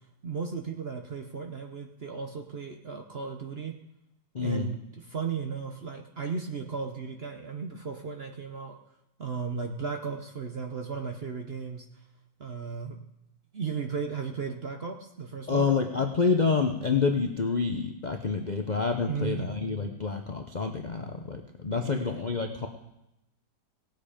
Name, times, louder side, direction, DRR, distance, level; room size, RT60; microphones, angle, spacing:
voice 1, 0.2-3.7 4.4-8.8 9.2-11.8 12.4-13.0 13.5-15.7 19.1-19.5 21.7-22.3, right 5 dB, 45° right, 3 dB, 0.8 m, -35 dB
voice 2, 4.3-4.7 15.5-22.7, left 5 dB, 65° left, 4 dB, 0.4 m, -28 dB
18.0 x 8.0 x 5.1 m, 0.88 s
omnidirectional pair, 2.0 m